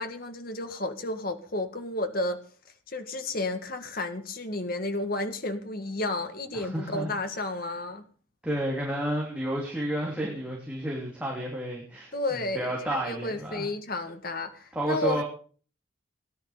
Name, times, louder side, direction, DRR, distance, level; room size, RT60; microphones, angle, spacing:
voice 1, 0.0-2.4 2.9-8.0 12.1-15.2, left 2 dB, 45° left, 1.8 m, -32 dB
voice 2, 6.5-7.1 8.4-13.7 14.7-15.2, right 1 dB, 5° right, 3.2 m, -31 dB
18.0 x 10.5 x 5.1 m
head